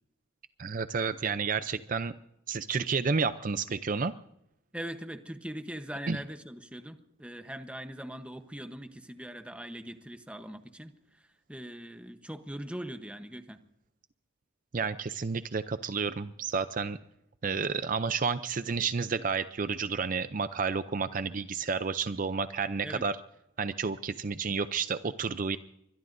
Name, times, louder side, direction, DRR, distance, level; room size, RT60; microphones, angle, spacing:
voice 1, 0.6-2.1 2.5-4.1 6.1-6.2 14.7-17.0 17.4-23.2 23.6-25.6, right 5 dB, 40° right, 12 dB, 0.5 m, -31 dB
voice 2, 4.7-11.2 11.5-13.6 22.8-23.0, right 1 dB, 5° right, 8 dB, 0.9 m, -41 dB
24.0 x 21.5 x 2.7 m, 0.78 s
head